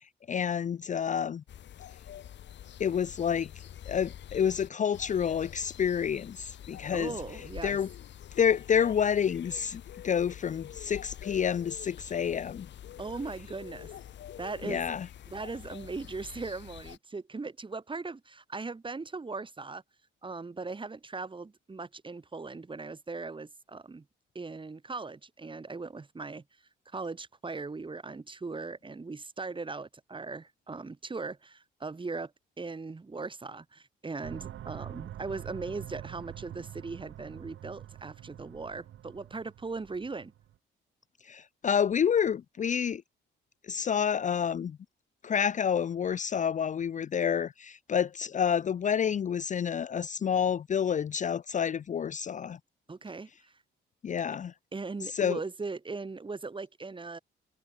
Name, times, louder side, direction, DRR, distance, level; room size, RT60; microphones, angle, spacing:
voice 1, 0.3-1.4 2.8-3.5 3.9-7.1 7.6-7.9 8.4-12.7 14.6-15.1 41.2-43.0 43.7-44.8 45.2-52.6 54.0-54.5 55.0-55.4, left 8 dB, 40° left, 0.6 m, -29 dB
sound 1, 1.5-17.0, left 11 dB, 65° left, 1.7 m, -46 dB
voice 2, 6.9-7.8 13.0-13.9 14.4-14.9 15.3-19.8 20.2-24.0 24.4-26.4 26.9-32.3 32.6-40.3 52.9-53.5 54.7-57.2, right 3 dB, 25° right, 3.7 m, -39 dB
sound 2, 34.2-40.5, right 12 dB, 75° right, 3.6 m, -45 dB
cardioid pair, 90°, 20 cm